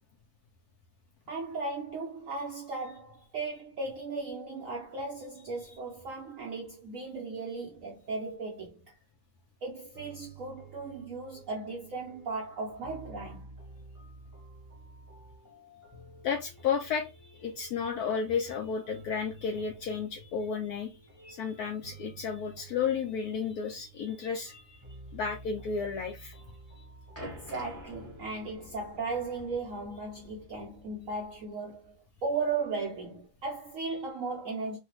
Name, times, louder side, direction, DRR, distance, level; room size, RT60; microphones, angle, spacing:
voice 1, 1.3-8.8 9.6-13.5 27.2-34.8, right 3 dB, 70° right, 0.7 m, -36 dB
sound 1, 9.9-29.9, right 2 dB, 25° right, 0.4 m, -52 dB
voice 2, 16.2-20.9 21.2-24.8 25.1-26.4, left 6 dB, 70° left, 0.9 m, -33 dB
sound 2, 26.6-31.4 31.7-31.9 32.6-32.7, left 1 dB, 10° left, 0.7 m, -49 dB
3.1 x 2.3 x 2.9 m
omnidirectional pair, 2.1 m